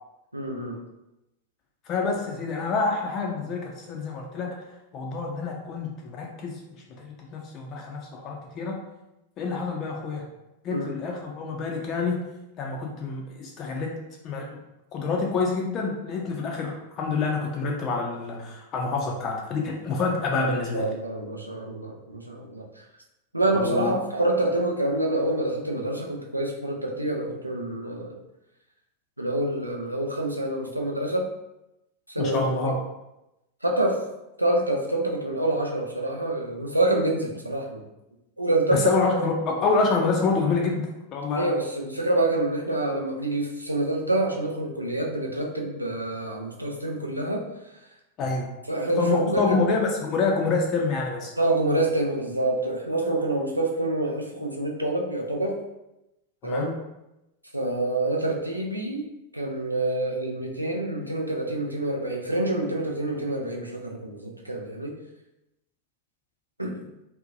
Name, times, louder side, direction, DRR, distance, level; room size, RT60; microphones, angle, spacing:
voice 1, 0.3-0.8 10.7-10.9 20.4-22.6 23.3-28.2 29.2-31.3 32.1-32.7 33.6-34.0 34.4-37.8 38.4-38.9 41.3-47.5 48.7-49.6 51.4-55.6 56.4-56.7 57.5-59.0 59.3-64.9 66.6-66.8, right 2 dB, 85° right, 0 dB, 0.4 m, -27 dB
voice 2, 1.9-4.5 4.9-6.6 7.0-8.8 9.4-10.3 10.6-12.2 12.6-13.9 14.2-14.6 14.9-20.9 23.5-24.0 32.2-32.8 38.7-41.5 48.2-48.5 49.0-51.3 56.4-56.7, left 4 dB, 35° left, 0 dB, 0.4 m, -27 dB
2.7 x 2.1 x 2.5 m, 0.93 s
figure-of-eight pair, 90°, 0 cm